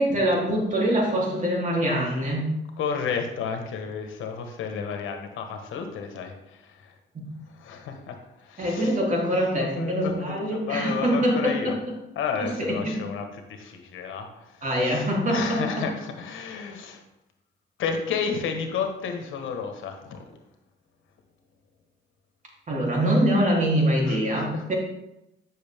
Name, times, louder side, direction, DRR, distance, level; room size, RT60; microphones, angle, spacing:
voice 1, 0.0-2.6 7.1-7.2 8.6-11.8 12.4-13.0 14.6-15.6 22.7-24.7, equal, 40° right, -2 dB, 3.2 m, -24 dB
voice 2, 2.8-6.9 7.4-9.0 9.4-10.3 10.7-11.8 12.1-17.0 17.8-20.2 24.0-24.7, left 6 dB, 80° left, 5 dB, 1.3 m, -32 dB
10.0 x 6.4 x 3.6 m, 0.88 s
cardioid pair, 90°, 20 cm